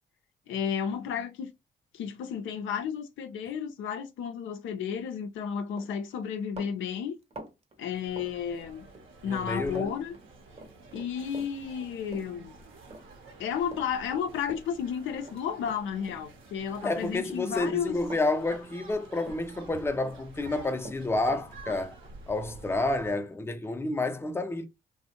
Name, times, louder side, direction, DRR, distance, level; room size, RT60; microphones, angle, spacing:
voice 1, 0.5-1.5 1.9-7.2 7.8-8.9 9.2-10.2 10.9-12.5 13.4-18.0, left 7 dB, 70° left, 0.4 m, -32 dB
Run, 5.2-5.4 5.7-9.1 9.3-9.9 10.1-16.5 16.8-19.0 19.2-20.2 20.4-23.7, right 2 dB, 30° right, 0.8 m, -47 dB
sound 1, 7.9-23.1, right 2 dB, 70° right, 0.7 m, -50 dB
voice 2, 9.3-9.9 16.8-21.9 22.3-24.7, left 2 dB, 10° left, 0.5 m, -30 dB
2.4 x 2.0 x 2.7 m
hypercardioid pair, 45°, 21 cm